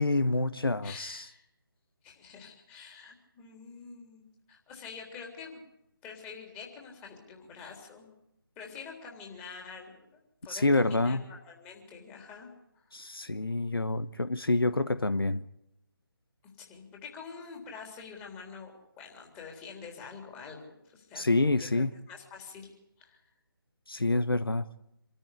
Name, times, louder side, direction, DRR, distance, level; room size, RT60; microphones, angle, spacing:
voice 1, 0.0-1.2 10.5-11.2 12.9-15.4 21.2-21.9 23.9-24.7, left 2 dB, 75° left, 1.0 m, -27 dB
voice 2, 0.8-1.5 2.0-5.6 6.0-8.1 8.6-13.1 16.6-23.2, left 5 dB, 15° left, 3.7 m, -47 dB
26.0 x 13.5 x 9.9 m
figure-of-eight pair, 150°, 12 cm